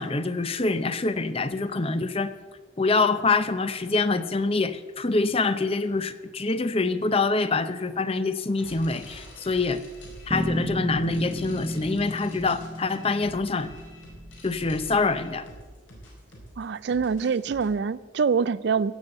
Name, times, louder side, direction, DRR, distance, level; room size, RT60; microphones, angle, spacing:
voice 1, 0.0-2.3 2.8-9.8 10.3-13.7 14.4-15.5, left 3 dB, 30° left, 12 dB, 0.7 m, -25 dB
sound 1, 8.6-17.7, equal, 75° left, 4.7 m, -46 dB
Bass guitar, 10.3-14.7, equal, 20° right, 0.9 m, -33 dB
voice 2, 16.6-18.9, right 5 dB, 55° right, 18 dB, 0.4 m, -25 dB
16.5 x 7.1 x 8.0 m, 1.4 s
head